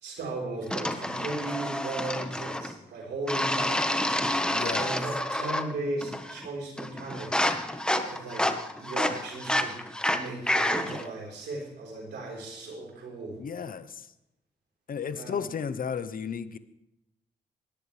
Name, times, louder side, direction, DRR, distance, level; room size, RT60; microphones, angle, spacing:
voice 1, 0.0-7.4 7.8-8.5 8.8-9.8 10.1-13.4 15.1-15.5, right 2 dB, 80° right, -2 dB, 4.3 m, -37 dB
sound 1, 0.7-2.7 3.3-5.7 6.0-6.5 6.8-11.1, left 1 dB, 5° left, 1.3 m, -29 dB
voice 2, 4.5-5.0 13.4-14.1 14.9-16.6, left 7 dB, 55° left, 13 dB, 0.9 m, -34 dB
18.0 x 11.0 x 3.4 m, 0.88 s
cardioid pair, 65°, 17 cm